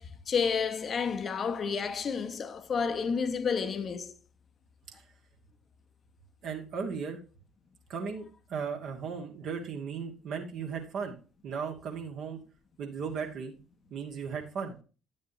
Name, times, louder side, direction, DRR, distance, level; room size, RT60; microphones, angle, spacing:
voice 1, 0.0-4.1, left 6 dB, 40° left, 0.9 m, -30 dB
voice 2, 6.4-7.2 7.9-11.2 11.4-12.4 12.8-13.5 13.9-14.8, right 6 dB, 55° right, 1.5 m, -36 dB
9.7 x 7.2 x 2.7 m
figure-of-eight pair, 50°, 0 cm